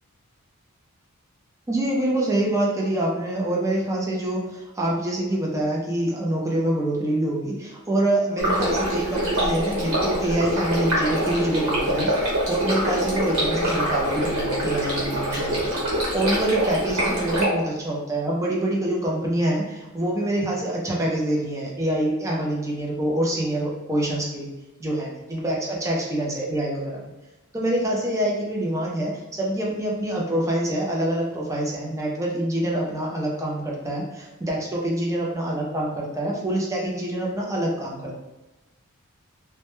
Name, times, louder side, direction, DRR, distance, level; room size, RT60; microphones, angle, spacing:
voice 1, 1.7-15.8 16.1-24.5 24.8-27.1 27.5-38.2, right 1 dB, 15° right, -3 dB, 0.4 m, -26 dB
Stream, 8.4-17.5, right 1 dB, 90° right, 1.1 m, -24 dB
2.1 x 2.1 x 2.9 m, 1.1 s
head